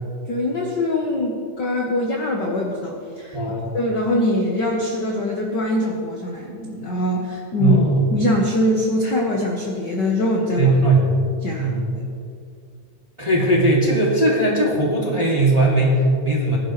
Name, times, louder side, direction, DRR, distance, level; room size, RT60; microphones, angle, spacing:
voice 1, 0.3-3.4 3.7-7.8 8.1-10.7 11.4-11.7, left 1 dB, 50° left, -1 dB, 1.3 m, -23 dB
voice 2, 3.3-3.7 7.6-8.1 10.6-11.2 11.6-11.9 13.2-16.6, right 2 dB, 10° right, -4 dB, 1.9 m, -18 dB
20.5 x 11.0 x 3.2 m, 2.3 s
omnidirectional pair, 3.4 m